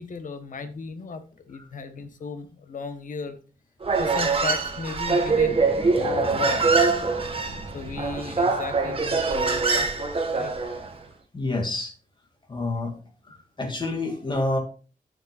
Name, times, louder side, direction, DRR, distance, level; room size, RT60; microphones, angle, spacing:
voice 1, 0.0-3.4 4.0-5.6 5.9-7.1 7.7-10.5, left 5 dB, 65° left, 9 dB, 1.2 m, -35 dB
Human voice, 3.8-10.9, right 4 dB, 40° right, 1.6 m, -24 dB
sound 1, 4.9-9.7, equal, 10° right, 1.9 m, -42 dB
voice 2, 11.3-11.9 12.5-12.9 13.3-14.6, left 2 dB, 30° left, 3 dB, 2.5 m, -28 dB
12.0 x 6.6 x 2.5 m, 0.36 s
wide cardioid pair, 115°, 15 cm